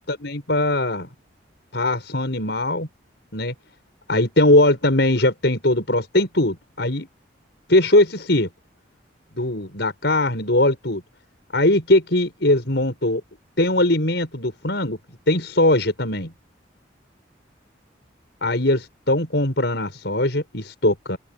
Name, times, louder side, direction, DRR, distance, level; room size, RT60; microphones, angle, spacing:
voice 1, 0.1-1.1 1.7-2.9 3.3-3.5 4.1-7.1 7.7-8.5 9.3-11.0 11.5-13.2 13.6-15.0 15.3-16.3 18.4-21.2, left 1 dB, 65° left, 5.8 m, -20 dB
open air
head